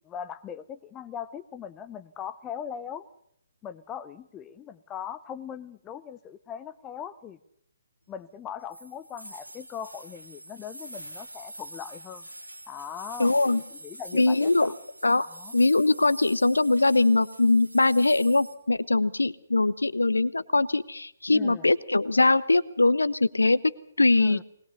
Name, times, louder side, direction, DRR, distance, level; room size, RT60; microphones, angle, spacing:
voice 1, 0.0-3.1 3.6-7.4 8.1-12.3 12.7-14.7 15.3-15.5 21.3-21.7 24.1-24.4, left 8 dB, 15° left, 12 dB, 0.7 m, -40 dB
sound 1, 8.7-18.5, right 1 dB, 85° right, 2.6 m, -44 dB
voice 2, 13.2-13.6 14.1-14.7 15.0-15.3 15.5-23.6 24.0-24.4, left 2 dB, 75° left, 18 dB, 0.8 m, -22 dB
20.5 x 20.5 x 6.9 m, 0.71 s
figure-of-eight pair, 135°, 0 cm